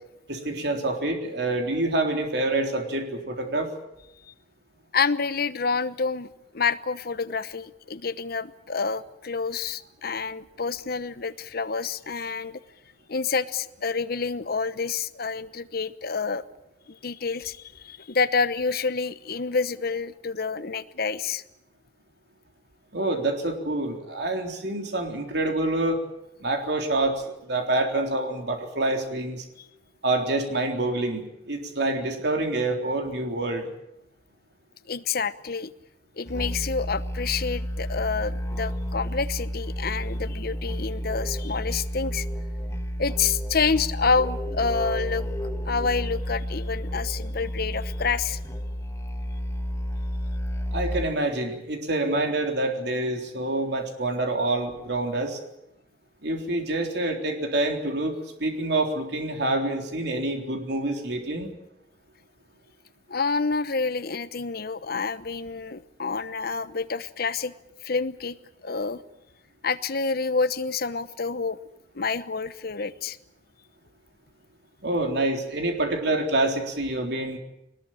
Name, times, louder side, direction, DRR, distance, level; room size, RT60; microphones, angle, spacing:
voice 1, 0.3-3.7 22.9-26.0 26.4-29.4 30.0-33.7 50.7-55.4 56.2-61.5 74.8-77.4, right 2 dB, 65° right, 4 dB, 3.8 m, -27 dB
voice 2, 4.9-6.3 6.5-12.6 13.1-16.4 16.9-21.4 34.9-35.7 36.2-42.3 43.0-45.3 45.6-48.4 63.1-67.5 67.8-68.4 68.6-69.0 69.6-71.6 71.9-73.2, left 5 dB, 60° left, 12 dB, 1.0 m, -28 dB
Musical instrument, 36.3-51.3, equal, 15° left, 1.3 m, -31 dB
22.0 x 20.0 x 8.9 m, 0.84 s
head